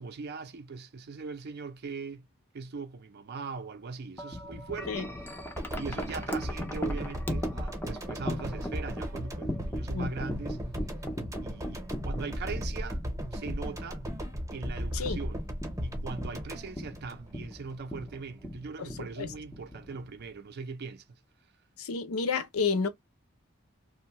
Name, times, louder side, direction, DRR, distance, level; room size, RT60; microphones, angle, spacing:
voice 1, 0.0-2.3 2.5-5.1 5.7-10.6 11.4-13.0 13.3-14.0 14.5-15.4 15.8-21.2, right 4 dB, 50° right, 0.4 m, -40 dB
Wind chime, 4.2-20.4, equal, 10° left, 0.4 m, -39 dB
sound 1, 5.6-17.7 18.0-18.2, equal, 15° right, 0.7 m, -36 dB
voice 2, 21.8-22.9, left 5 dB, 85° left, 0.6 m, -30 dB
2.6 x 2.1 x 2.8 m
head